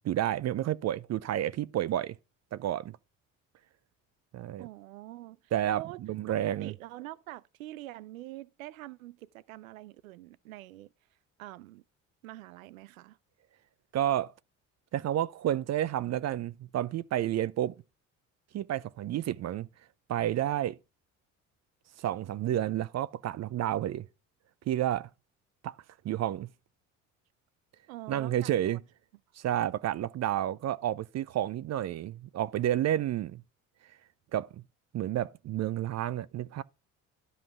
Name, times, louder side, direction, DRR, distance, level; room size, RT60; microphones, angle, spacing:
voice 1, 0.0-2.2 2.5-3.0 4.3-4.7 5.5-5.8 6.1-6.7 13.9-14.3 14.9-17.7 18.5-19.7 20.1-20.8 22.0-24.1 24.7-25.1 25.6-25.7 26.0-26.5 28.1-28.8 29.4-33.4 34.3-34.6 34.9-36.6, right 12 dB, 40° right, 0.5 m, -30 dB
voice 2, 4.6-6.0 6.4-10.9 11.4-11.8 12.2-13.2 27.9-28.8, right 16 dB, 85° right, 0.5 m, -45 dB
12.0 x 5.6 x 5.6 m
hypercardioid pair, 60°, 40 cm